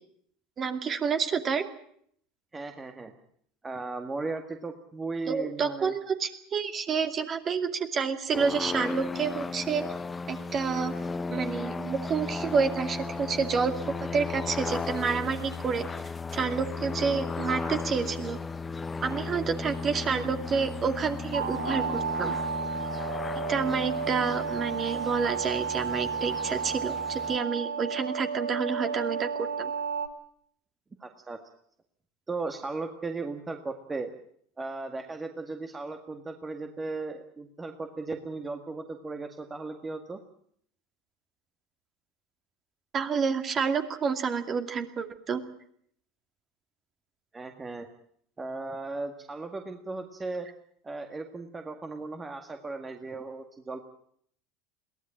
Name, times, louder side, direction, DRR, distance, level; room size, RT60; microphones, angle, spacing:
voice 1, 0.6-1.6 5.3-9.8 10.3-10.9 11.3-13.7 14.0-15.9 16.3-18.4 19.0-22.4 23.5-29.7 42.9-45.4, right 5 dB, 35° right, 7 dB, 2.4 m, -29 dB
voice 2, 2.5-3.1 3.6-5.9 31.0-31.4 32.3-34.1 34.6-40.2 47.3-47.9 48.4-50.5 50.8-53.8, right 3 dB, 20° right, 5 dB, 1.9 m, -36 dB
sound 1, 8.3-27.4, left 4 dB, 20° left, 0.9 m, -35 dB
sound 2, 21.3-30.1, right 6 dB, 85° right, 1.6 m, -32 dB
22.0 x 16.5 x 8.9 m, 0.66 s
hypercardioid pair, 80°, 0 cm